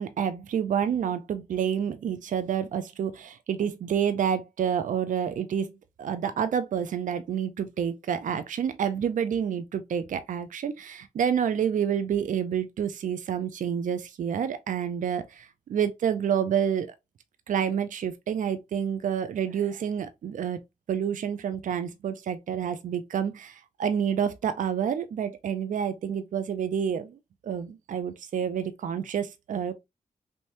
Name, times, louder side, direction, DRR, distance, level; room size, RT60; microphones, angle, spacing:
voice 1, 0.0-5.7 6.0-16.9 17.5-20.6 20.9-27.1 27.4-29.7, right 8 dB, 80° right, 0.4 m, -28 dB
3.4 x 2.6 x 2.8 m
cardioid pair, 60°, 13 cm